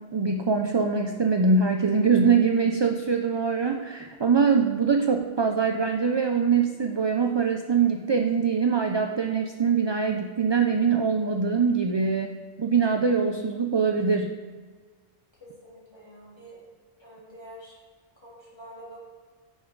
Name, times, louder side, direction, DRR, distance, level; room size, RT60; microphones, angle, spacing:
voice 1, 0.0-14.3, right 5 dB, 40° right, 4 dB, 0.4 m, -23 dB
voice 2, 15.4-16.6 17.0-17.8 18.2-19.0, right 1 dB, 25° left, -7 dB, 3.1 m, -46 dB
9.0 x 7.0 x 3.9 m, 1.5 s
omnidirectional pair, 1.0 m